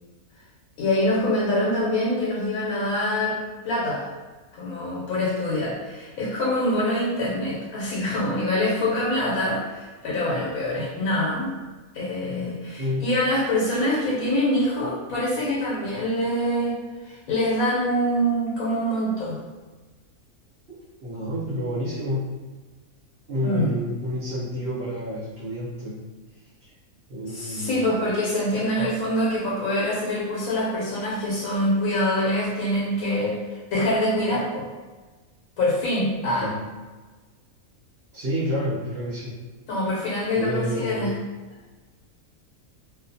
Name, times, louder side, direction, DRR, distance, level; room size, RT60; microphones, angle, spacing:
voice 1, 0.8-4.1 4.5-11.5 11.9-19.4 23.4-23.7 27.3-34.7 35.6-36.5 39.7-41.1, left 1 dB, 80° left, -6 dB, 1.1 m, -25 dB
voice 2, 12.8-13.1 20.7-22.3 23.3-26.0 27.1-27.9 36.4-36.6 38.1-39.3 40.3-41.1, equal, 50° right, -10 dB, 1.1 m, -29 dB
2.5 x 2.3 x 2.7 m, 1.3 s
omnidirectional pair, 1.5 m